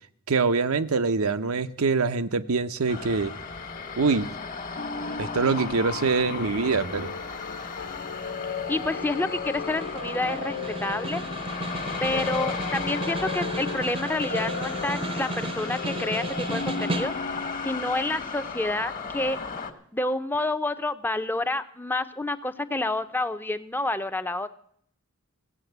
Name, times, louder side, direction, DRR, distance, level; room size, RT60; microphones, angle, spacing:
voice 1, 0.3-3.3 4.0-4.3 5.2-7.1, right 4 dB, 85° right, 11 dB, 0.8 m, -24 dB
sound 1, 2.9-19.7, left 5 dB, 40° left, 1.4 m, -36 dB
sound 2, 4.8-19.7, left 5 dB, 65° left, 0.9 m, -37 dB
voice 2, 8.7-11.2 12.0-17.1 17.6-19.4 19.9-24.5, left 2 dB, 10° left, 10 dB, 0.6 m, -29 dB
Snare drum, 9.5-17.5, right 2 dB, 25° right, 0.7 m, -34 dB
16.5 x 8.2 x 7.9 m, 0.65 s
head